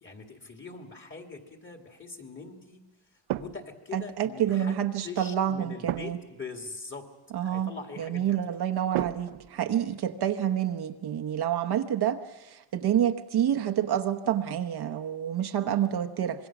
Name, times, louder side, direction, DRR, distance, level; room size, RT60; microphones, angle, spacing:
voice 1, 0.0-2.8 3.4-7.1 7.4-8.4, left 4 dB, 25° left, 4 dB, 2.3 m, -42 dB
sound 1, 3.3-3.9 5.9-6.4 8.9-10.1 13.5-13.9, right 13 dB, 75° right, 0.8 m, -34 dB
voice 2, 3.9-6.2 7.3-16.5, right 10 dB, 50° right, 6 dB, 1.0 m, -28 dB
26.0 x 21.5 x 6.0 m, 1.1 s
cardioid pair, 140°, 49 cm